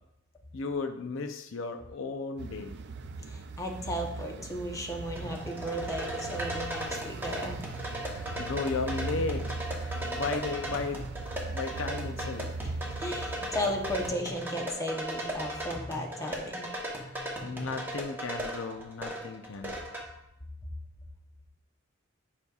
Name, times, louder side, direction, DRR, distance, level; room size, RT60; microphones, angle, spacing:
voice 1, 0.5-2.7 8.1-9.5 9.7-11.0 11.5-12.5 17.0-19.8, left 4 dB, 65° left, 7 dB, 0.5 m, -35 dB
sound 1, 2.4-14.1, right 3 dB, 55° right, 0.4 m, -39 dB
voice 2, 3.3-7.6 12.6-16.7, equal, 15° left, 1 dB, 0.8 m, -35 dB
sound 2, 5.2-20.0, right 1 dB, 10° right, 1.1 m, -37 dB
9.4 x 5.1 x 2.4 m, 0.83 s
head